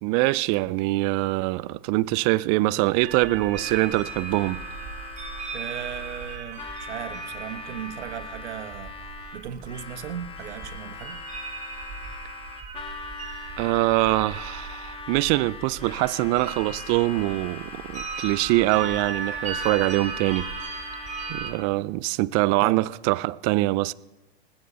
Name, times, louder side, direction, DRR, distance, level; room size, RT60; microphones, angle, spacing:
voice 1, 0.0-4.6 13.6-20.8 21.3-23.9, right 19 dB, 45° right, 0.7 m, -24 dB
sound 1, 3.0-21.5, right 5 dB, 20° right, 3.7 m, -37 dB
Harmonica, 3.5-21.8, left 5 dB, 15° left, 1.6 m, -41 dB
voice 2, 5.5-8.9 9.3-11.2 22.6-22.9, right 10 dB, 85° right, 1.4 m, -36 dB
20.0 x 15.5 x 4.2 m
hypercardioid pair, 120°, 33 cm